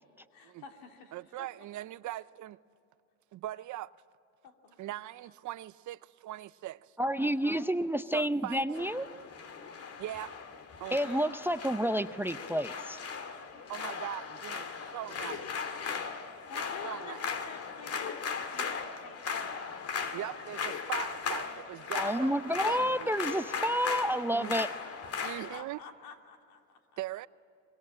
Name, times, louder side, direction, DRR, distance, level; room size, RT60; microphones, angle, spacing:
voice 1, 0.3-1.5 4.4-5.0 7.2-8.0 16.5-20.3 22.7-23.1 24.4-24.7 25.0-26.8, left 5 dB, 75° left, 2.9 m, -50 dB
voice 2, 1.1-2.6 3.3-3.9 4.8-6.9 8.1-8.9 10.0-10.4 10.8-11.3 13.7-15.5 16.8-17.2 20.1-22.3 22.6-23.2 24.3-24.6 25.2-25.8 27.0-27.3, right 15 dB, 55° right, 0.6 m, -41 dB
voice 3, 7.0-9.1 10.9-13.0 21.9-24.7, equal, 5° right, 0.6 m, -30 dB
sound 1, 8.7-25.6, left 5 dB, 45° left, 2.0 m, -38 dB
24.0 x 22.5 x 8.8 m
supercardioid pair, 95°, 35 cm